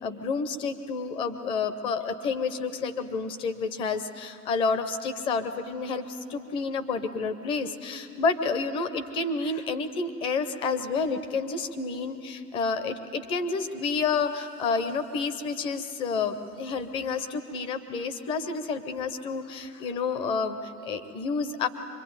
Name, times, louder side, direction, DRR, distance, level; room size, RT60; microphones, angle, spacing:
voice 1, 0.0-21.7, left 4 dB, 10° left, 10 dB, 0.5 m, -29 dB
24.5 x 22.0 x 9.5 m, 3.0 s
hypercardioid pair, 120°, 48 cm